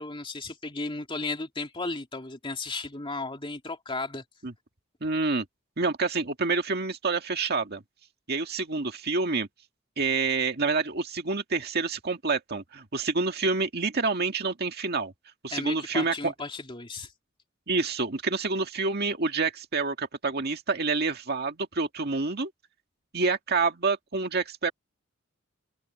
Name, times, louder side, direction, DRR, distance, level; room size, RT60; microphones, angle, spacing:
voice 1, 0.0-4.2 15.5-17.1, left 3 dB, 25° left, 2.7 m, -34 dB
voice 2, 5.0-5.5 5.8-7.8 8.3-9.5 10.0-15.1 15.4-16.3 17.7-22.5 23.1-24.7, right 4 dB, 55° right, 2.0 m, -28 dB
head